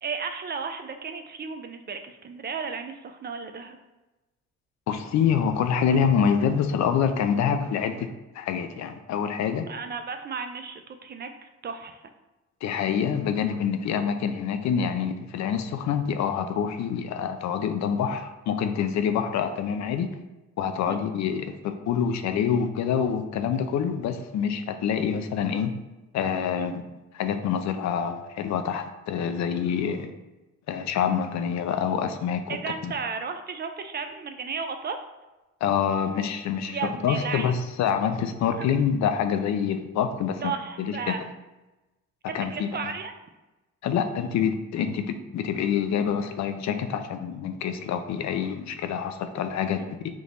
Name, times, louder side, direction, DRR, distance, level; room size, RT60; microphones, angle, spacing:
voice 1, 0.0-3.8 9.7-11.3 11.6-12.0 20.9-21.0 26.5-26.8 32.5-35.0 36.7-37.6 38.6-38.7 40.4-41.2 42.3-43.1 49.8-49.9, right 5 dB, 35° right, 7 dB, 0.4 m, -34 dB
voice 2, 4.9-9.7 12.6-20.1 20.6-25.7 26.1-26.8 27.1-30.1 30.7-32.6 32.8-32.9 35.6-40.5 40.8-41.2 42.3-42.9 43.8-50.1, left 7 dB, 65° left, 8 dB, 0.5 m, -26 dB
3.5 x 2.9 x 3.9 m, 1.1 s
cardioid pair, 90°, 30 cm